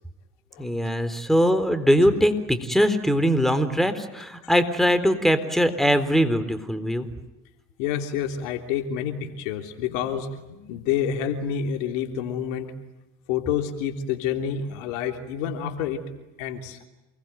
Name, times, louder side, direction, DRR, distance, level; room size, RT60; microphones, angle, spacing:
voice 1, 0.6-7.1, equal, ahead, 11 dB, 4.0 m, -21 dB
voice 2, 7.8-12.7 13.3-16.0 16.4-16.8, left 8 dB, 80° left, 5 dB, 3.5 m, -28 dB
28.5 x 21.0 x 9.3 m, 1.0 s
hypercardioid pair, 70°, 38 cm